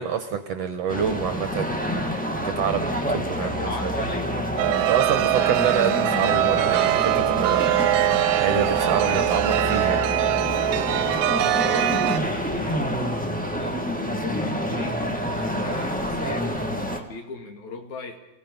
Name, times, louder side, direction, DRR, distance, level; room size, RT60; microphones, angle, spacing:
voice 1, 0.0-4.0 4.9-8.1 8.4-10.0 11.7-11.8, right 7 dB, 60° right, 8 dB, 1.9 m, -27 dB
sound 1, 0.9-17.0, equal, 5° left, 0.9 m, -28 dB
voice 2, 3.0-4.5 4.8-4.9 5.2-5.5 10.9-11.1 11.4-13.2 13.4-18.2, left 3 dB, 60° left, 4 dB, 3.6 m, -39 dB
Chime, 4.6-12.2, right 14 dB, 90° right, 2.5 m, -22 dB
28.5 x 17.0 x 5.4 m, 0.98 s
omnidirectional pair, 3.8 m